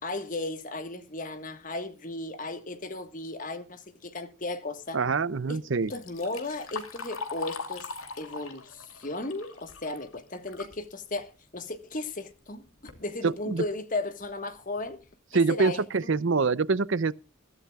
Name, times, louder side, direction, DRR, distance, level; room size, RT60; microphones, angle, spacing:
voice 1, 0.0-5.0 5.5-5.6 5.9-7.9 8.2-15.0 15.3-16.1, left 2 dB, 40° left, 1.5 m, -35 dB
voice 2, 4.9-5.9 13.2-13.6 15.3-17.1, right 4 dB, 65° right, 0.6 m, -25 dB
Liquid, 5.7-10.8 11.2-11.3 12.2-12.3 12.7-13.0 13.6-13.7 14.2-14.3 14.8-15.0, left 4 dB, 80° left, 2.8 m, -41 dB
21.5 x 13.0 x 2.4 m
head